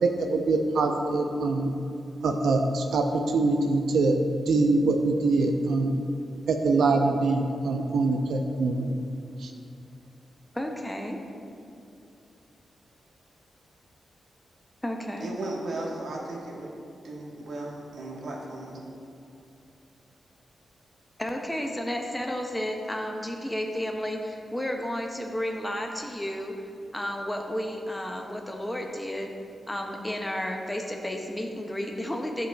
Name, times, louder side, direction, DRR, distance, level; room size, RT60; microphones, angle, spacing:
voice 1, 0.0-1.7 2.2-5.9 6.5-8.9 9.4-9.5, right 3 dB, 85° right, 3 dB, 0.5 m, -24 dB
voice 2, 10.5-11.2 14.8-15.3 21.2-26.5 26.9-29.3 29.7-32.5, equal, 5° left, 2 dB, 0.4 m, -32 dB
voice 3, 15.2-16.7 17.0-18.8, right 2 dB, 65° right, -2 dB, 1.2 m, -36 dB
12.5 x 5.2 x 2.2 m, 2.6 s
wide cardioid pair, 170°, 0 cm